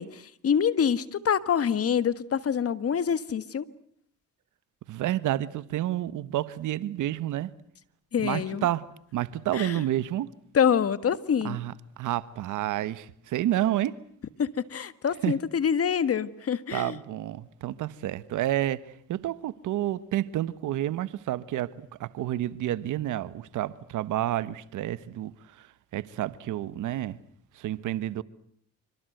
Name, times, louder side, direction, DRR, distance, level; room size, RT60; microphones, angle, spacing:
voice 1, 0.0-3.7 8.1-8.7 9.5-9.8 10.5-11.6 14.4-17.0, left 7 dB, 50° left, 1.6 m, -26 dB
voice 2, 4.9-7.5 8.2-10.3 11.4-13.9 15.2-15.3 16.7-18.8 19.1-25.7 25.9-27.2 27.5-28.2, right 13 dB, 80° right, 1.3 m, -30 dB
28.0 x 25.0 x 7.9 m
cardioid pair, 90°, 30 cm